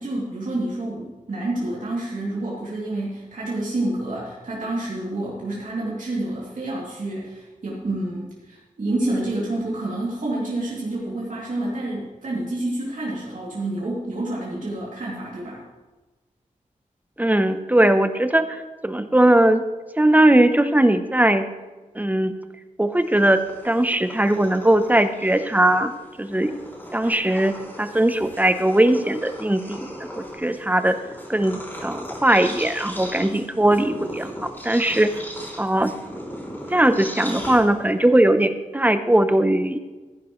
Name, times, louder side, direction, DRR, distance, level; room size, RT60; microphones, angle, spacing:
voice 1, 0.0-15.6, right 2 dB, 75° right, -6 dB, 2.8 m, -28 dB
voice 2, 17.2-18.5 18.8-19.6 20.0-21.5 21.9-22.3 22.8-25.9 26.2-26.5 26.9-31.0 31.3-35.1 35.6-35.9 36.7-39.8, right 1 dB, 10° right, 10 dB, 0.7 m, -19 dB
Purr, 23.0-38.1, equal, 15° left, 3.0 m, -37 dB
15.0 x 10.5 x 3.2 m, 1.2 s
wide cardioid pair, 100°, 14 cm